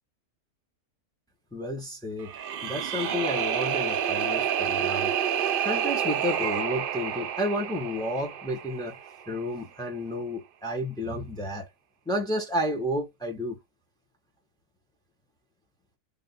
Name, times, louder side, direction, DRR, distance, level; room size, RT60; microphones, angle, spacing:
voice 1, 1.5-5.2 5.6-9.0 9.3-11.7 12.1-13.6, left 1 dB, 5° left, 0.8 m, -31 dB
sound 1, 2.2-9.3, right 9 dB, 85° right, 0.4 m, -29 dB
3.5 x 2.6 x 4.0 m
omnidirectional pair, 1.6 m